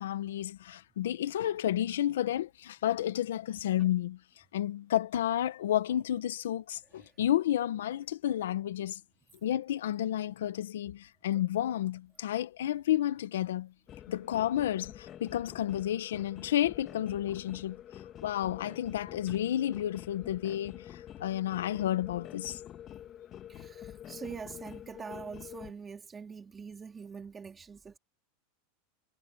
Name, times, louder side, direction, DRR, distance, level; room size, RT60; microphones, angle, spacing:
voice 1, 0.0-4.2 4.5-9.0 9.4-13.7 14.1-17.8 18.2-22.6, left 12 dB, 90° left, 1.3 m, -31 dB
sound 1, 13.9-25.7, left 11 dB, 35° left, 1.9 m, -48 dB
voice 2, 23.5-28.0, right 5 dB, 20° right, 2.8 m, -44 dB
supercardioid pair, 125°, 0 cm